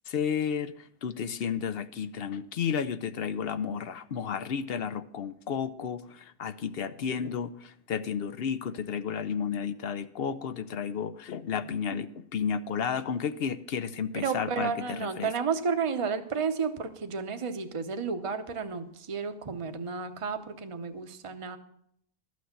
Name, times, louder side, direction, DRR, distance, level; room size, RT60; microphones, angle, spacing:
voice 1, 0.1-0.7 1.0-15.3, left 7 dB, 65° left, 13 dB, 0.8 m, -32 dB
voice 2, 14.1-21.6, right 5 dB, 30° right, 8 dB, 0.8 m, -32 dB
12.5 x 6.2 x 7.2 m, 0.69 s
omnidirectional pair, 1.1 m